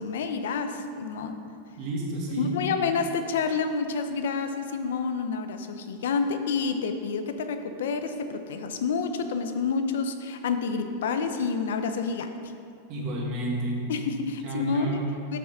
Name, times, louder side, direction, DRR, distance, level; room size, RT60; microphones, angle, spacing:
voice 1, 0.0-1.4 2.4-12.5 13.9-15.0 15.3-15.4, left 5 dB, 80° left, 8 dB, 0.6 m, -29 dB
voice 2, 1.8-2.6 12.9-13.9 14.4-15.1, right 2 dB, 35° right, -2 dB, 1.5 m, -30 dB
6.3 x 4.8 x 6.5 m, 2.5 s
supercardioid pair, 170°, 0 cm